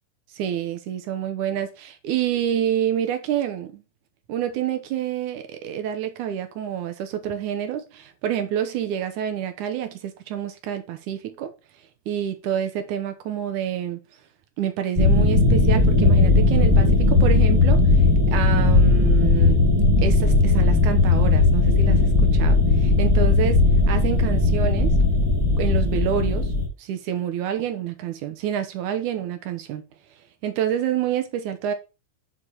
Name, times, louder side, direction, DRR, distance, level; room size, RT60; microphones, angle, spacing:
voice 1, 0.4-3.8 4.3-11.5 12.1-14.0 14.6-17.8 18.3-19.7 20.0-24.9 25.6-26.5 26.8-29.8 30.4-31.7, right 10 dB, 70° right, 2.3 m, -28 dB
sound 1, 15.0-26.7, left 3 dB, 10° right, 1.7 m, -17 dB
6.3 x 5.1 x 5.5 m
omnidirectional pair, 3.8 m